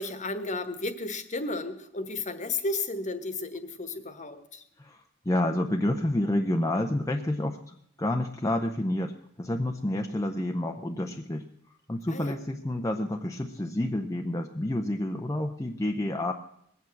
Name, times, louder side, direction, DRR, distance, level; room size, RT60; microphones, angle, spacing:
voice 1, 0.0-4.6 12.1-12.4, left 2 dB, 35° left, 10 dB, 1.3 m, -33 dB
voice 2, 4.8-11.5 11.9-16.3, left 1 dB, 15° left, 2 dB, 0.7 m, -29 dB
20.0 x 8.4 x 7.7 m, 0.72 s
head